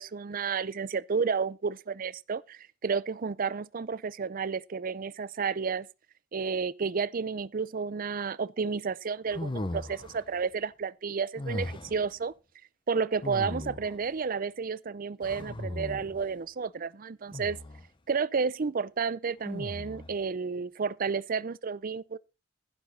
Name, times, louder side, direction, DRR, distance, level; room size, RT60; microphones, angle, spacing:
voice 1, 0.0-5.9 6.3-12.3 12.9-17.6 18.1-22.2, right 5 dB, 45° right, 0.5 m, -31 dB
sound 1, 9.3-10.3 11.4-12.1 13.2-14.0 15.2-16.2 17.3-17.9 19.4-20.2, left 1 dB, 25° left, 0.7 m, -37 dB
11.5 x 10.5 x 4.0 m
head